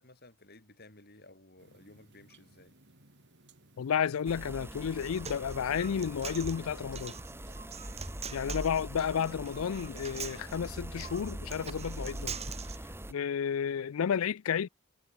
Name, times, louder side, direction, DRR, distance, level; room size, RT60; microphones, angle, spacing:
voice 1, 0.0-2.7 8.1-8.4, left 2 dB, 45° left, 7.2 m, -56 dB
sound 1, 1.6-8.8, right 2 dB, 50° right, 5.5 m, -61 dB
voice 2, 3.8-7.1 8.3-12.4 13.1-14.7, left 7 dB, 70° left, 0.4 m, -32 dB
sound 2, 4.3-13.1, right 1 dB, 10° right, 1.9 m, -42 dB
Human voice, 4.8-12.8, right 7 dB, 30° right, 5.0 m, -44 dB
head